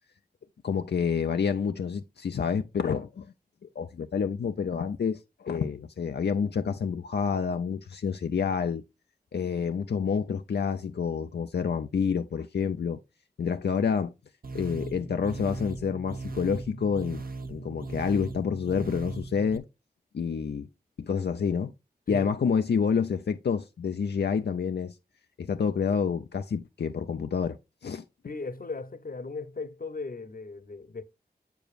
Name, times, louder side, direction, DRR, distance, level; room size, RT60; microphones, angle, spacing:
voice 1, 0.6-3.3 3.8-8.8 9.3-13.0 13.4-14.1 14.5-17.2 17.5-19.6 20.1-20.7 21.0-21.7 22.1-25.0 25.4-27.6 27.8-28.0, left 6 dB, 85° left, 0.5 m, -28 dB
sound 1, 14.4-19.6, right 3 dB, 60° right, 1.0 m, -38 dB
voice 2, 22.1-22.5 28.2-31.0, left 3 dB, 60° left, 0.9 m, -37 dB
7.8 x 7.0 x 2.4 m
wide cardioid pair, 70°, 17 cm